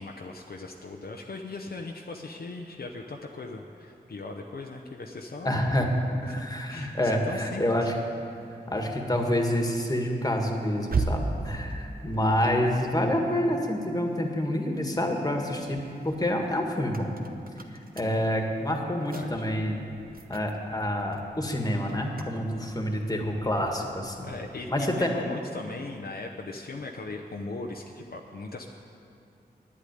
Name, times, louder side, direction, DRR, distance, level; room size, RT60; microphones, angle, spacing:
voice 1, 0.0-5.7 6.2-7.6 19.0-19.5 24.2-28.7, left 3 dB, 60° left, 2 dB, 0.8 m, -39 dB
voice 2, 5.4-5.9 6.2-7.9 8.7-17.1 17.9-19.8 20.3-24.3 24.7-25.1, left 1 dB, 20° left, 2 dB, 1.7 m, -27 dB
sound 1, 8.0-14.6 15.0-24.8, right 3 dB, 55° right, 0.9 m, -39 dB
9.8 x 8.5 x 9.2 m, 2.5 s
wide cardioid pair, 60°, 18 cm